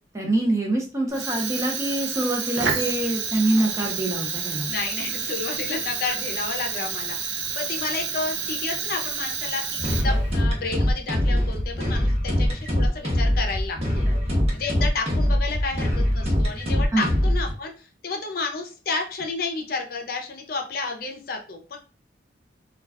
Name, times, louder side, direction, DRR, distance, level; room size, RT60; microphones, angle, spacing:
voice 1, 0.1-4.7 16.9-17.2, right 2 dB, 20° right, 0 dB, 0.6 m, -25 dB
Fire, 1.1-10.4, right 6 dB, 75° right, 0.6 m, -29 dB
voice 2, 4.7-14.0 14.5-21.8, left 4 dB, 55° left, 3 dB, 0.6 m, -31 dB
sound 1, 9.8-17.5, equal, 35° right, 0.9 m, -23 dB
2.3 x 2.3 x 3.4 m, 0.34 s
head